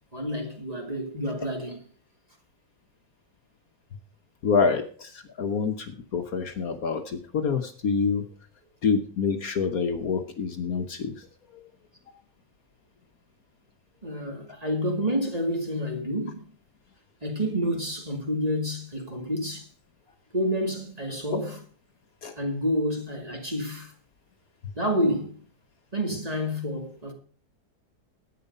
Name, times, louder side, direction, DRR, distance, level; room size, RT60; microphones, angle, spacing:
voice 1, 0.1-1.9 14.0-16.5 17.2-19.7 20.3-21.6 22.4-23.9 24.8-25.4 25.9-27.1, equal, 20° right, 2.3 m, -29 dB
voice 2, 4.4-8.3 8.8-11.3 11.5-11.6 22.2-22.3, left 5 dB, 60° left, 1.4 m, -27 dB
11.0 x 9.0 x 5.4 m
omnidirectional pair, 1.8 m